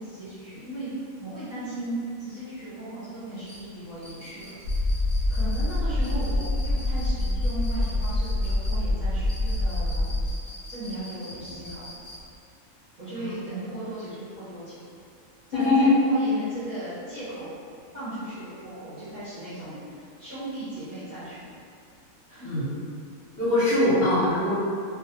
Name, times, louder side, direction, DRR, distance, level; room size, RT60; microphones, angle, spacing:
voice 1, 0.0-4.5 5.3-10.1 10.7-11.9 13.0-14.8 15.5-17.5 17.9-21.4 22.3-22.5, right 1 dB, 45° right, -13 dB, 0.6 m, -37 dB
sound 1, 3.4-12.4, left 1 dB, 5° right, 0.7 m, -43 dB
sound 2, 4.6-10.3, left 1 dB, 90° left, 1.0 m, -26 dB
voice 2, 15.5-15.9 22.4-22.7 23.4-24.5, left 2 dB, 55° left, -11 dB, 0.7 m, -21 dB
2.4 x 2.1 x 2.8 m, 2.3 s
omnidirectional pair, 1.4 m